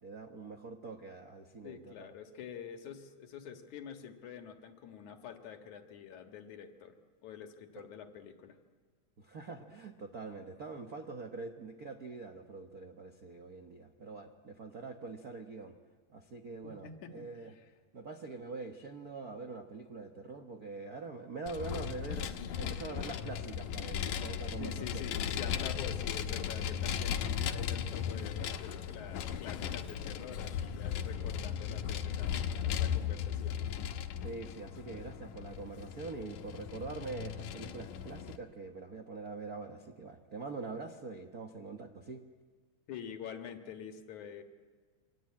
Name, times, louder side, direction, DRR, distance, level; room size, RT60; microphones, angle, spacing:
voice 1, 0.0-2.1 7.7-7.9 9.2-15.8 16.1-17.5 17.9-25.0 34.2-42.2, right 4 dB, 50° right, 5 dB, 1.0 m, -44 dB
voice 2, 1.6-6.9 7.2-8.6 16.6-17.3 24.6-33.6 42.9-44.4, left 8 dB, 70° left, 5 dB, 3.0 m, -46 dB
Vehicle, 21.5-38.4, left 9 dB, 90° left, 2.6 m, -37 dB
28.0 x 24.0 x 8.7 m, 1.4 s
omnidirectional pair, 3.6 m